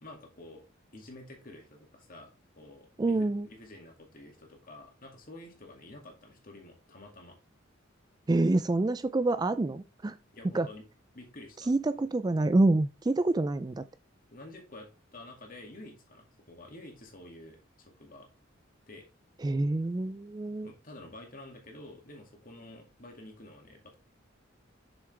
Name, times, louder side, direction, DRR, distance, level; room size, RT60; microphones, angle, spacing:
voice 1, 0.0-0.6 0.9-7.4 10.3-10.8 11.1-11.7 14.3-18.3 18.9-19.1 20.6-23.9, left 1 dB, 45° left, 2.4 m, -49 dB
voice 2, 3.0-3.5 8.3-10.2 10.5-10.7 11.7-13.8 19.4-20.7, right 2 dB, 20° right, 0.3 m, -27 dB
7.1 x 6.5 x 3.3 m
head